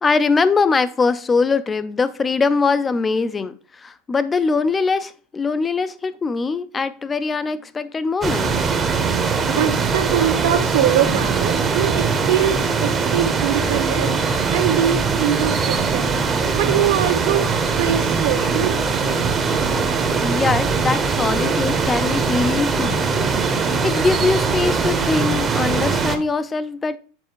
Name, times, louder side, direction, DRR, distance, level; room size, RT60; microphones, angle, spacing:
voice 1, 0.0-8.7 10.2-10.3 20.2-23.1 23.3-23.5 23.8-27.0, left 4 dB, 15° left, 0.4 m, -22 dB
sound 1, 8.2-26.2, right 5 dB, 15° right, 0.8 m, -21 dB
voice 2, 9.5-14.2 14.5-16.2 16.5-17.5 17.8-18.7, right 10 dB, 70° right, 1.4 m, -22 dB
7.9 x 4.2 x 4.6 m
supercardioid pair, 160°, 0 cm